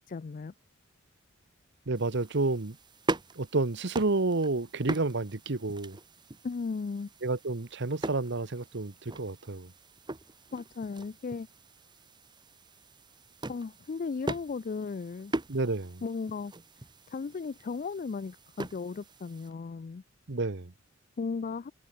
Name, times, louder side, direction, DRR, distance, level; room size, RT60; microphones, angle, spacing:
voice 1, 0.1-0.5 6.4-7.1 10.5-11.5 13.5-15.3 16.0-16.5 17.1-20.0 21.2-21.7, left 4 dB, 40° left, 0.4 m, -36 dB
sound 1, 1.9-19.5, right 2 dB, 20° right, 1.0 m, -41 dB
voice 2, 1.9-2.8 3.4-6.0 7.2-9.7 15.5-16.0 20.3-20.7, right 3 dB, 60° right, 1.1 m, -30 dB
head